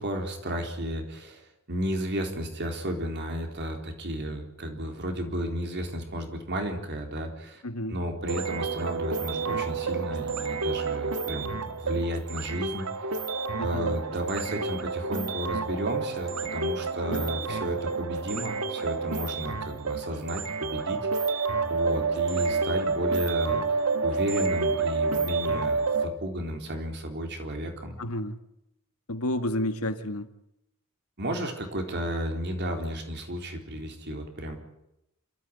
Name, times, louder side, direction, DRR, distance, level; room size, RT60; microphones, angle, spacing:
voice 1, 0.0-7.6 7.9-12.9 13.6-21.0 21.7-28.0 31.2-34.6, equal, 50° right, 4 dB, 4.0 m, -33 dB
voice 2, 7.6-8.0 13.6-14.0 17.1-17.2 28.0-28.4 29.1-30.3, left 1 dB, 80° left, 9 dB, 1.7 m, -30 dB
sound 1, 8.3-26.1, right 4 dB, 85° right, 1.7 m, -29 dB
27.5 x 14.0 x 9.5 m, 0.85 s
head